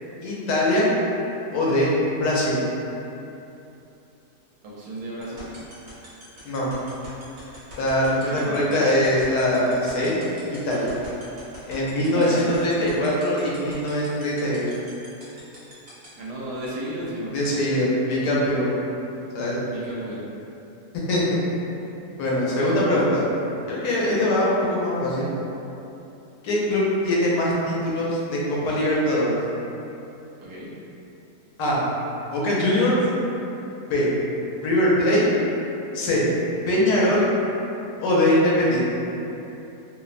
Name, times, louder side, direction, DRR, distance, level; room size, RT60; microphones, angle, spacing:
voice 1, 0.2-0.9 1.5-1.9 2.2-2.6 6.4-6.7 7.8-10.1 10.5-10.9 11.7-14.6 17.3-18.7 19.3-19.6 21.1-21.2 22.2-23.3 23.7-25.3 26.4-29.4 31.6-31.8 32.3-32.9 33.9-34.1 34.6-35.2 35.9-36.3 36.7-37.3 38.0-38.8, left 1 dB, 85° left, -5 dB, 1.2 m, -22 dB
voice 2, 4.6-5.5 8.2-8.7 12.0-12.6 16.1-17.3 19.1-19.2 19.7-20.3 30.4-30.7, right 1 dB, 75° right, -6 dB, 1.1 m, -34 dB
sound 1, 5.2-16.1, right 2 dB, 50° right, 0.9 m, -44 dB
2.9 x 2.0 x 2.4 m, 2.9 s
omnidirectional pair, 1.7 m